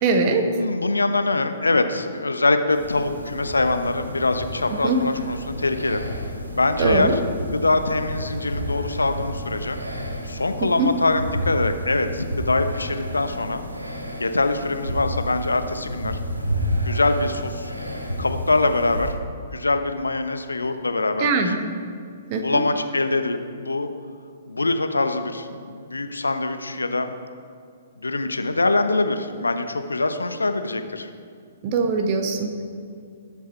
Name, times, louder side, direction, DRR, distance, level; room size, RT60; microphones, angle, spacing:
voice 1, 0.0-0.5 4.8-5.0 6.8-7.1 10.6-10.9 21.2-21.6 22.3-22.6 31.6-32.6, right 4 dB, 35° right, 4 dB, 1.5 m, -22 dB
voice 2, 0.6-6.0 6.5-9.8 10.2-13.6 14.2-16.2 16.8-17.7 18.2-19.2 19.5-21.3 22.3-23.9 24.5-27.1 28.0-31.1, left 2 dB, 75° left, 8 dB, 0.9 m, -23 dB
sound 1, 2.7-19.1, equal, 85° right, 1.9 m, -31 dB
19.5 x 7.3 x 4.5 m, 2.2 s
figure-of-eight pair, 120°, 0 cm